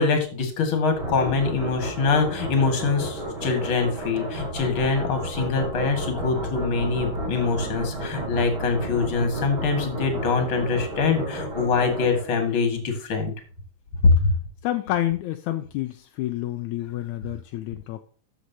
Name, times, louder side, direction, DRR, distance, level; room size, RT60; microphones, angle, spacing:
voice 1, 0.0-13.3 14.0-14.3, left 4 dB, 45° left, 5 dB, 2.5 m, -24 dB
sound 1, 0.9-12.6, right 1 dB, 35° right, 5.5 m, -32 dB
voice 2, 14.6-18.0, left 14 dB, 80° left, 8 dB, 1.9 m, -29 dB
13.5 x 6.2 x 2.8 m, 0.41 s
omnidirectional pair, 3.7 m